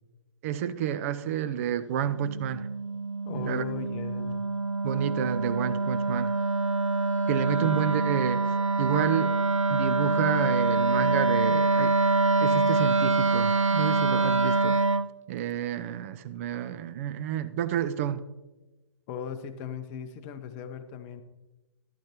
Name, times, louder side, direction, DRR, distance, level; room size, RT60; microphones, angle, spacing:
voice 1, 0.4-2.7 3.3-3.6 4.8-6.3 7.3-8.4 8.8-9.4 9.7-11.9 12.4-14.8 15.3-18.2, right 9 dB, 30° right, 13 dB, 0.5 m, -30 dB
Wind instrument woodwind instrument, 2.2-15.1, right 3 dB, 90° right, 0.5 m, -25 dB
voice 2, 3.2-4.4 7.6-7.7 19.1-21.2, left 7 dB, 25° left, 8 dB, 0.8 m, -37 dB
13.0 x 11.5 x 2.9 m, 1.1 s
figure-of-eight pair, 130°, 16 cm